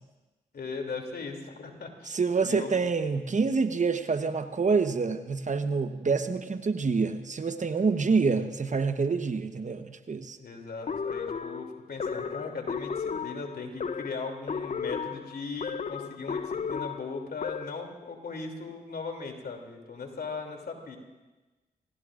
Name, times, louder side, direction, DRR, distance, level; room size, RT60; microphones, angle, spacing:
voice 1, 0.5-2.2 2.4-2.7 10.4-21.0, left 4 dB, 65° left, 3 dB, 2.9 m, -38 dB
voice 2, 2.1-10.4, right 4 dB, 45° right, 9 dB, 1.1 m, -27 dB
sound 1, 10.9-17.9, left 6 dB, 45° left, 0.7 m, -34 dB
27.0 x 17.5 x 2.6 m, 1.2 s
supercardioid pair, 40°, 17 cm